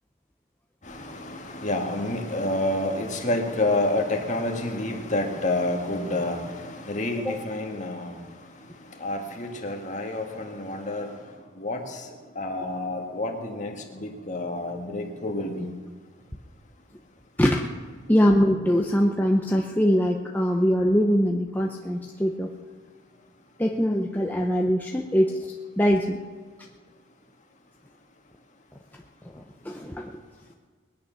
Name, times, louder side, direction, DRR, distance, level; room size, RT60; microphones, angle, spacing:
voice 1, 0.9-8.2 9.0-11.1 11.6-12.0 12.4-15.7, left 2 dB, 35° left, 2 dB, 1.8 m, -29 dB
voice 2, 18.1-22.6 23.6-26.2 29.3-30.2, equal, 10° left, 0 dB, 0.7 m, -23 dB
21.5 x 9.5 x 5.8 m, 1.6 s
head